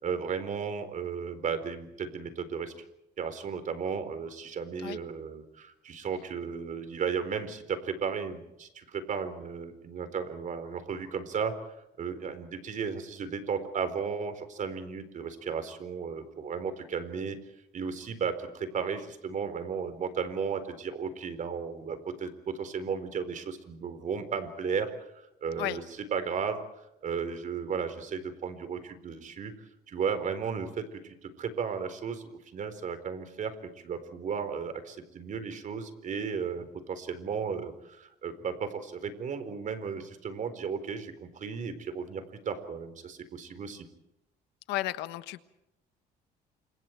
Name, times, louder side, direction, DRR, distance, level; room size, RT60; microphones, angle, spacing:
voice 1, 0.0-2.7 3.2-17.4 17.7-24.9 25.4-25.8 26.1-26.6 27.0-29.5 29.9-32.2 32.5-33.5 33.8-43.9, right 6 dB, 50° right, 4.1 m, -34 dB
voice 2, 44.7-45.4, left 16 dB, 90° left, 1.4 m, -33 dB
29.5 x 27.0 x 4.6 m
cardioid pair, 110°, 17 cm